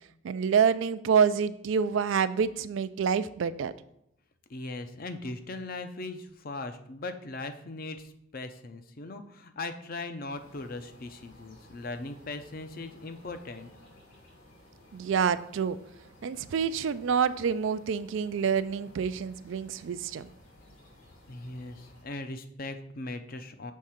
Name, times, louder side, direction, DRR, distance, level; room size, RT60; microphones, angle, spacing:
voice 1, 0.2-3.7 14.9-15.8 16.2-20.3, right 6 dB, 65° right, 14 dB, 0.3 m, -27 dB
voice 2, 4.5-13.7 21.3-23.7, left 2 dB, 45° left, 8 dB, 0.6 m, -39 dB
sound 1, 10.3-22.0, left 1 dB, 85° left, 2.4 m, -56 dB
6.4 x 3.6 x 5.7 m, 0.77 s
head